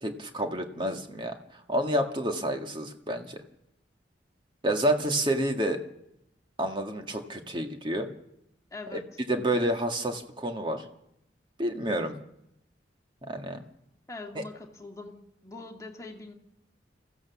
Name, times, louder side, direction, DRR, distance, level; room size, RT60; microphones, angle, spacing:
voice 1, 0.0-3.4 4.6-5.8 6.6-8.1 9.3-10.8 11.6-12.1 13.2-13.6 14.4-14.5, right 1 dB, 25° right, 4 dB, 1.9 m, -29 dB
voice 2, 8.7-9.0 14.1-16.3, left 3 dB, 20° left, 1 dB, 2.2 m, -42 dB
26.0 x 15.0 x 7.1 m, 0.81 s
head